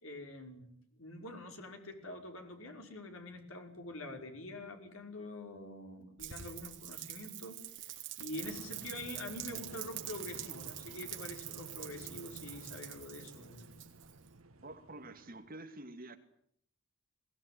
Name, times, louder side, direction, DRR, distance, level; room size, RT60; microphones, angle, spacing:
voice 1, 0.0-0.7 1.0-13.7, left 1 dB, 85° left, 4 dB, 5.5 m, -46 dB
Rain, 6.2-14.3, right 13 dB, 60° right, 3.6 m, -45 dB
sound 1, 8.4-15.6, right 2 dB, 85° right, 1.5 m, -53 dB
voice 2, 14.6-16.2, right 2 dB, 45° right, 7 dB, 2.6 m, -48 dB
22.5 x 19.5 x 9.9 m, 0.68 s
head